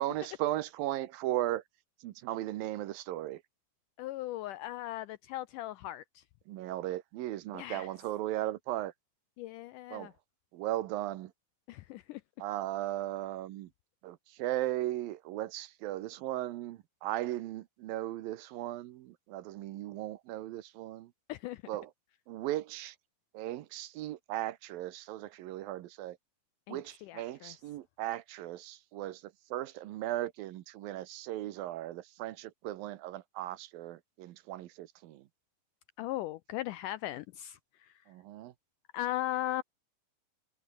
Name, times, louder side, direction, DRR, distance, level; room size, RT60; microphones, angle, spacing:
voice 1, 0.0-1.6 2.0-3.4 6.5-8.9 9.9-10.1 10.5-11.3 12.4-13.7 14.0-21.1 21.7-21.9 22.3-23.0 23.3-26.2 26.7-35.3 38.1-38.5, right 14 dB, 75° right, 2.7 m, -37 dB
voice 2, 4.0-6.2 7.5-7.9 9.4-10.1 11.7-12.2 21.3-21.6 26.7-27.5 36.0-37.9 38.9-39.6, left 14 dB, 85° left, 1.9 m, -38 dB
omnidirectional pair, 4.3 m